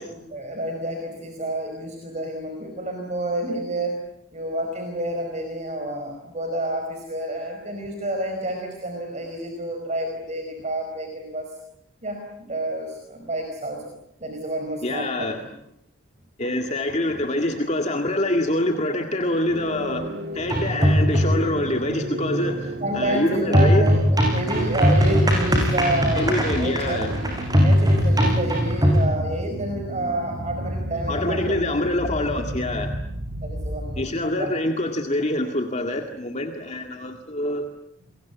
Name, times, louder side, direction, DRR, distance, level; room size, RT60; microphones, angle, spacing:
voice 1, 0.0-4.0 4.3-11.5 12.0-13.9 14.2-15.3 17.1-17.2 22.8-26.3 26.6-27.1 27.6-31.8 33.4-34.5, right 1 dB, 35° right, 3 dB, 4.8 m, -29 dB
voice 2, 14.8-15.4 16.4-23.8 26.1-27.1 31.1-33.0 34.0-37.6, left 1 dB, 35° left, 4 dB, 2.0 m, -25 dB
sound 1, 19.2-34.2, right 1 dB, 55° right, 2.4 m, -32 dB
sound 2, 20.4-21.6 23.5-29.1, equal, 20° right, 7.4 m, -20 dB
29.0 x 22.5 x 8.4 m, 0.79 s
head